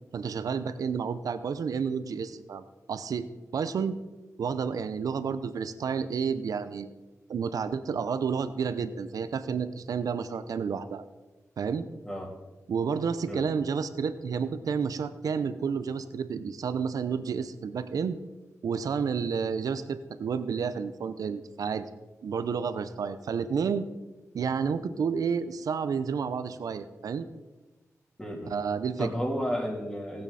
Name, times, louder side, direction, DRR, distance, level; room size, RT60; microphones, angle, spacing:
voice 1, 0.1-3.3 3.5-4.0 4.4-6.9 7.3-11.0 11.6-11.9 12.7-18.2 18.6-21.9 22.2-23.9 24.3-27.3 28.5-29.1, right 6 dB, 85° right, 12 dB, 0.7 m, -30 dB
voice 2, 28.2-28.6 29.0-30.2, equal, 15° left, -2 dB, 3.1 m, -32 dB
16.0 x 8.9 x 4.1 m, 1.2 s
cardioid pair, 75°, 6 cm